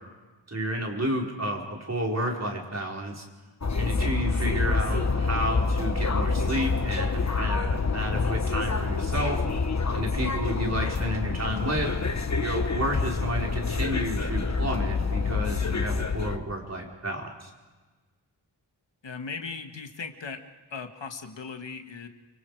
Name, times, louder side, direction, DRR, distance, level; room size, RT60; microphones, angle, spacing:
voice 1, 0.5-3.2 3.7-9.4 9.9-11.9 12.4-17.5, equal, 35° right, -1 dB, 4.6 m, -31 dB
sound 1, 3.6-16.4, left 4 dB, 35° left, 1.3 m, -27 dB
voice 2, 19.0-20.4 20.7-22.1, left 5 dB, 75° left, 5 dB, 1.9 m, -38 dB
29.5 x 24.5 x 4.8 m, 1.3 s
wide cardioid pair, 90°, 44 cm